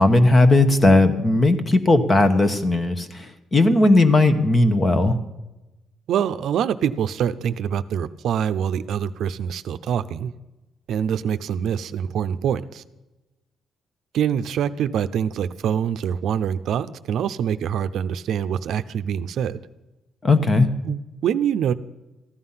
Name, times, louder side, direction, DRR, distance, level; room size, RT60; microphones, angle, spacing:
voice 1, 0.0-5.2 20.2-20.7, left 2 dB, 20° left, 10 dB, 1.1 m, -17 dB
voice 2, 6.1-10.3 10.9-12.8 14.1-19.6 20.8-21.7, right 8 dB, 70° right, 11 dB, 0.6 m, -25 dB
15.0 x 11.5 x 5.7 m, 1.0 s
cardioid pair, 155°, 0 cm